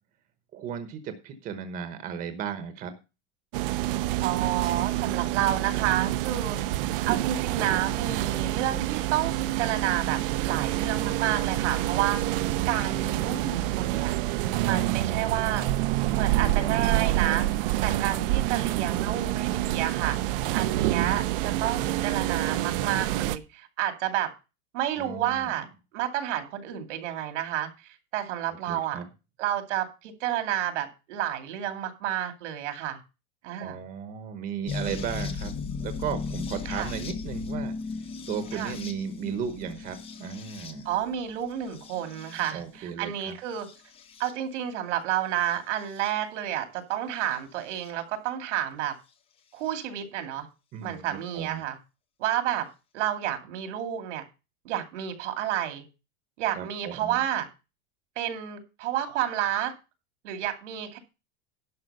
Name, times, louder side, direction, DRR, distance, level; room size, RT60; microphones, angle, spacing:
voice 1, 0.5-2.9 17.9-18.0 24.9-25.6 28.7-29.0 33.6-35.5 35.8-37.7 38.3-40.9 42.5-43.4 50.7-51.6 56.5-57.2, right 7 dB, 25° right, 8 dB, 1.1 m, -35 dB
ride in the trolleybus, 3.5-23.4, right 15 dB, 50° right, 0.7 m, -27 dB
voice 2, 4.2-6.6 7.0-14.1 14.6-15.7 16.1-17.5 17.8-20.2 20.5-24.3 24.7-25.7 25.9-29.0 29.4-33.0 33.4-33.8 36.7-36.9 38.5-38.7 40.8-43.7 44.2-48.9 49.5-50.5 50.8-51.8 52.2-52.7 52.9-54.2 54.6-55.8 56.4-57.5 58.2-59.7 60.2-61.0, right 11 dB, 80° right, 6 dB, 2.5 m, -30 dB
sound 1, 34.7-42.8 43.5-44.3 45.5-46.1 47.8-47.9 49.7-49.8, left 5 dB, 15° left, 0.7 m, -37 dB
11.5 x 5.2 x 6.6 m, 0.29 s
supercardioid pair, 170°, 35 cm